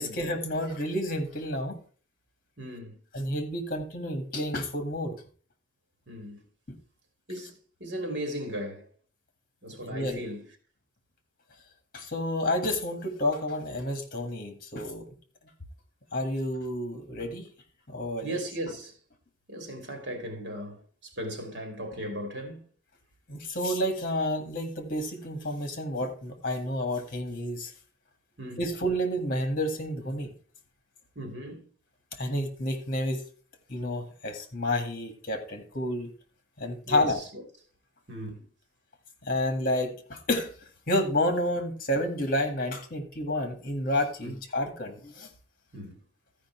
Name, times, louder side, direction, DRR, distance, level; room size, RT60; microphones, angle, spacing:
voice 1, 0.0-1.8 3.1-5.2 9.7-10.2 11.9-15.1 16.1-17.5 17.9-18.4 23.3-27.7 28.6-30.3 32.1-33.2 33.7-36.1 36.6-37.2 39.2-40.5 40.9-45.3, left 1 dB, 50° left, 1.8 m, -30 dB
voice 2, 2.6-3.0 6.1-6.4 7.3-8.9 9.6-10.5 18.2-18.9 19.5-22.7 28.4-28.6 31.2-31.6 36.9-37.4 38.1-38.4 44.2-44.3 45.7-45.9, equal, 65° right, 2.6 m, -37 dB
13.5 x 5.1 x 4.5 m
head